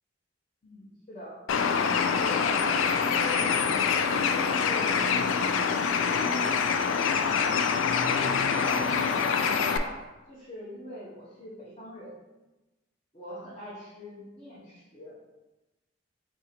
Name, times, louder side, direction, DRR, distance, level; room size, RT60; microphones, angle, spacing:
voice 1, 0.6-1.4 2.0-6.4 8.2-10.0 10.3-12.1 13.1-15.2, equal, 30° left, -9 dB, 0.9 m, -43 dB
Bird, 1.5-9.8, left 6 dB, 75° left, 0.3 m, -25 dB
3.7 x 2.8 x 4.2 m, 1.1 s
head